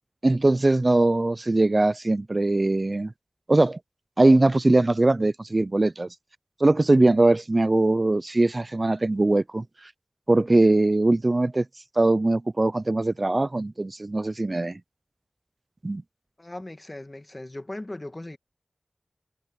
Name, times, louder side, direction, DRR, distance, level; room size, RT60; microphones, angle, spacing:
voice 1, 0.2-3.1 3.5-3.8 4.2-6.1 6.6-9.9 10.3-11.6 12.0-14.8 15.8-16.0, right 2 dB, 45° right, 0.4 m, -21 dB
voice 2, 16.4-18.4, left 1 dB, 35° left, 1.4 m, -38 dB
wide cardioid pair, 50°, 0 cm